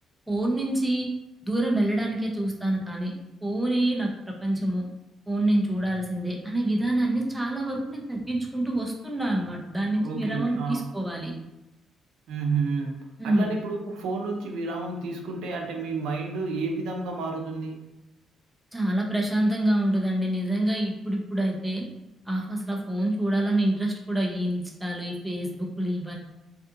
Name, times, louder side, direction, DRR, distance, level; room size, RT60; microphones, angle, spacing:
voice 1, 0.3-1.1 1.4-3.1 3.4-4.8 5.3-11.3 13.2-13.6 18.7-21.9 22.3-26.2, right 1 dB, 5° right, -1 dB, 0.5 m, -26 dB
voice 2, 10.0-10.9 12.3-17.8, right 4 dB, 85° right, 2 dB, 0.4 m, -30 dB
2.6 x 2.4 x 2.4 m, 0.93 s
cardioid pair, 90°, 0 cm